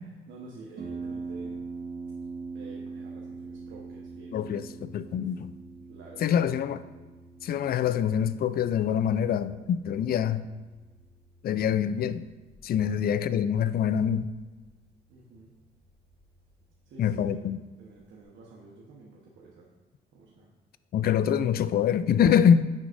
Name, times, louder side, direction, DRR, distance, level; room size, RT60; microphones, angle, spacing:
voice 1, 0.3-1.6 2.5-4.3 5.1-5.4 5.9-6.6 12.9-13.1 15.1-15.6 16.8-17.5 17.8-19.7 20.1-20.5, right 3 dB, 75° right, 1.2 m, -49 dB
Harp, 0.8-18.2, right 4 dB, 55° right, 1.4 m, -44 dB
voice 2, 4.3-5.5 6.2-6.8 7.4-10.5 11.4-12.3 12.6-14.3 17.0-17.6 20.9-22.7, left 8 dB, 50° left, 0.4 m, -25 dB
9.7 x 6.3 x 2.6 m
cardioid pair, 90°, 20 cm